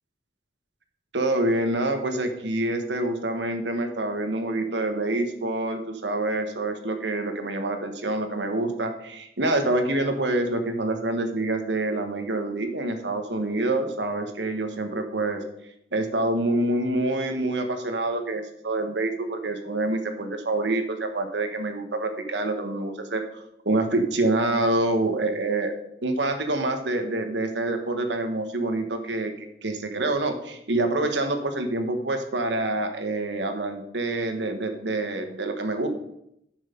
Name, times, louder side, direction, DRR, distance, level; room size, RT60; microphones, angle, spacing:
voice 1, 1.1-15.4 15.9-23.2 23.6-25.7 26.0-35.9, right 2 dB, 90° right, 6 dB, 1.4 m, -26 dB
10.5 x 6.4 x 5.3 m, 0.79 s
head